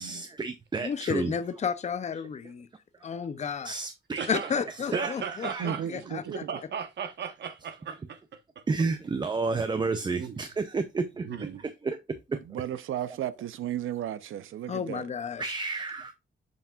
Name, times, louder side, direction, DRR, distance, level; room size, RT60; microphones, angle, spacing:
voice 1, 0.0-1.3 3.6-4.3 4.9-5.1 5.4-5.7 8.7-11.3 11.8-12.4 15.4-16.1, right 4 dB, 20° right, 0.5 m, -31 dB
voice 2, 0.8-2.7 3.0-3.7 4.3-6.2 14.7-15.5, left 6 dB, 35° left, 0.6 m, -32 dB
voice 3, 4.1-4.5 4.9-8.6 10.2-10.4 11.2-11.7, right 7 dB, 60° right, 1.0 m, -37 dB
voice 4, 5.6-6.5 12.4-15.1, right 11 dB, 85° right, 0.6 m, -34 dB
7.2 x 5.7 x 2.4 m
wide cardioid pair, 150°, 20 cm